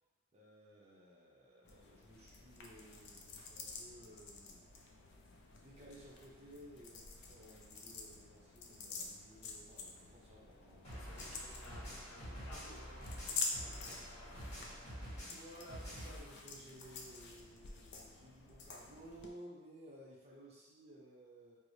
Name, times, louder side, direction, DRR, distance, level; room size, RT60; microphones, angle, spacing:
voice 1, 0.3-4.7 5.5-10.8 15.3-21.6, right 1 dB, 30° right, -5 dB, 0.6 m, -57 dB
sound 1, 1.6-19.3, left 4 dB, 50° left, 0.4 m, -48 dB
sound 2, 10.8-16.2, equal, 30° left, 1.3 m, -47 dB
voice 2, 10.9-14.5, left 1 dB, 70° left, -5 dB, 0.8 m, -59 dB
4.6 x 2.0 x 2.7 m, 1.2 s
head